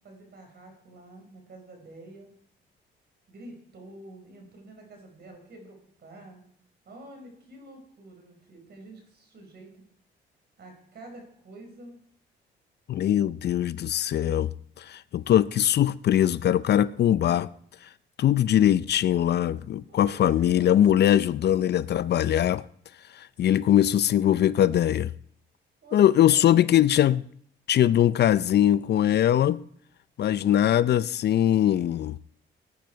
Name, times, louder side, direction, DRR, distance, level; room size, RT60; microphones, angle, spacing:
voice 1, 0.0-2.3 3.3-6.4 6.9-9.7 10.6-12.0 19.9-20.7 25.8-26.5, right 2 dB, 55° right, 5.3 m, -48 dB
voice 2, 12.9-14.5 14.8-17.5 18.2-22.6 23.1-25.1 25.9-27.2 27.7-29.6 30.2-32.2, left 11 dB, 55° left, 0.5 m, -21 dB
17.5 x 9.6 x 4.5 m
cardioid pair, 90°, 20 cm